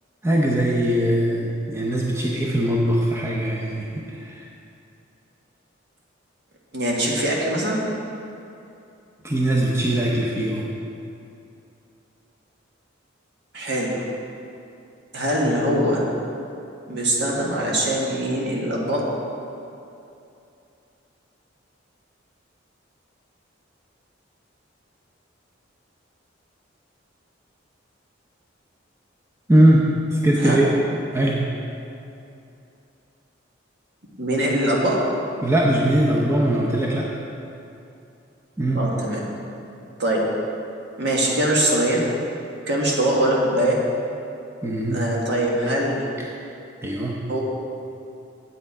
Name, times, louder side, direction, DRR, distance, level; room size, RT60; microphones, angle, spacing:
voice 1, 0.2-4.4 9.2-10.7 29.5-30.7 31.1-31.4 35.4-37.1 38.6-38.9 44.6-45.0 46.8-47.2, right 1 dB, 15° right, -3 dB, 0.7 m, -21 dB
voice 2, 6.7-7.8 13.5-14.0 15.1-16.0 16.9-19.0 30.4-30.6 34.2-35.0 38.7-39.2 40.0-40.2 41.0-42.0 42.7-43.8 44.9-46.0 47.3-47.4, right 1 dB, 60° right, -3 dB, 1.6 m, -22 dB
8.2 x 8.0 x 4.8 m, 2.7 s
head